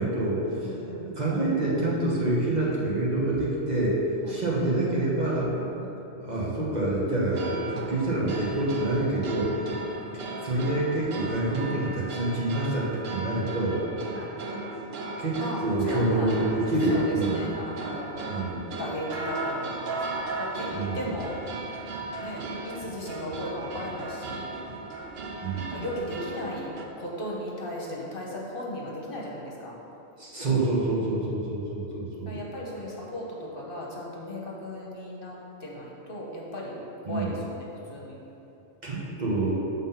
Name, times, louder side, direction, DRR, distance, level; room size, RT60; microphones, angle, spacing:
voice 1, 0.0-0.7 1.2-4.0 4.3-5.5 6.2-9.5 10.4-13.8 15.2-17.5 18.3-18.7 20.7-21.1 25.4-25.8 30.2-32.4 37.0-37.3 38.8-39.6, right 2 dB, 40° right, -6 dB, 1.2 m, -27 dB
voice 2, 0.6-1.1 4.2-4.4 5.5-6.0 9.6-10.5 14.1-14.3 15.4-16.4 16.9-18.3 18.8-20.0 20.4-21.4 22.2-24.5 25.6-26.7 27.0-29.7 31.0-31.5 32.2-38.2, left 1 dB, 55° left, -4 dB, 1.2 m, -37 dB
sound 1, 7.3-26.9, right 2 dB, 65° right, 0.9 m, -36 dB
7.2 x 3.8 x 5.6 m, 3.0 s
omnidirectional pair, 1.2 m